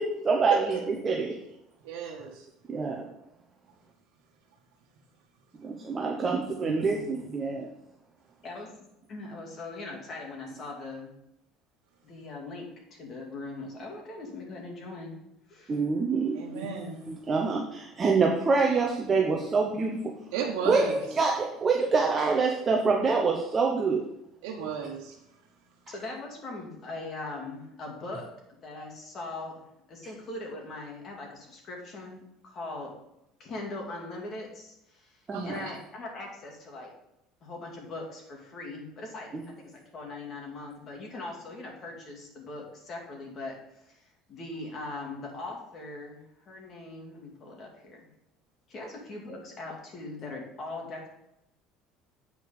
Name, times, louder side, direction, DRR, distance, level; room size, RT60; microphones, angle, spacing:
voice 1, 0.0-1.3 2.7-3.0 5.6-7.7 15.7-16.7 17.1-20.1 20.7-24.0 35.3-35.5, right 4 dB, 20° right, 0 dB, 0.9 m, -26 dB
voice 2, 1.8-2.4 16.3-17.0 20.3-21.0 24.4-25.2 35.3-35.7, right 6 dB, 85° right, -1 dB, 1.2 m, -33 dB
voice 3, 6.2-7.1 8.4-8.7 9.1-11.1 12.0-15.2 15.5-15.8 25.9-29.6 29.9-32.9 33.4-36.9 37.4-43.6 43.8-48.0 48.7-51.1, left 2 dB, 35° left, 0 dB, 2.3 m, -40 dB
8.1 x 5.3 x 5.1 m, 0.84 s
cardioid pair, 155°, 0 cm